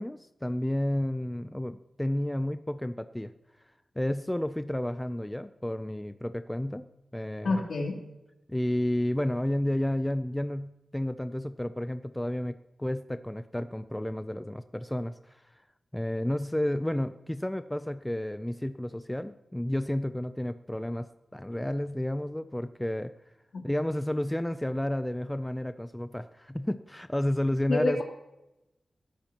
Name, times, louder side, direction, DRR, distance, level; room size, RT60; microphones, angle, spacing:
voice 1, 0.0-3.3 4.0-6.9 7.1-7.6 8.5-15.4 15.9-23.1 23.6-28.0, left 1 dB, 10° left, 10 dB, 0.4 m, -31 dB
voice 2, 7.4-8.0 23.5-23.6 27.7-28.0, left 2 dB, 65° left, 1 dB, 3.0 m, -27 dB
17.0 x 13.5 x 2.9 m, 0.94 s
wide cardioid pair, 145°, 0 cm